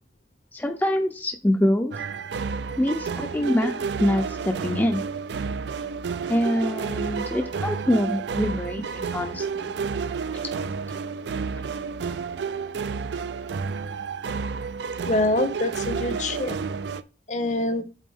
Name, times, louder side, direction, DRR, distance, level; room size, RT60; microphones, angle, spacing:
voice 1, 0.5-2.0 2.8-5.0 6.3-9.7, left 1 dB, 10° left, 0.5 m, -25 dB
sound 1, 1.9-17.0, right 5 dB, 75° right, 0.4 m, -30 dB
voice 2, 15.0-16.6 17.3-17.8, left 2 dB, 40° left, 0.7 m, -25 dB
8.4 x 3.7 x 3.5 m
head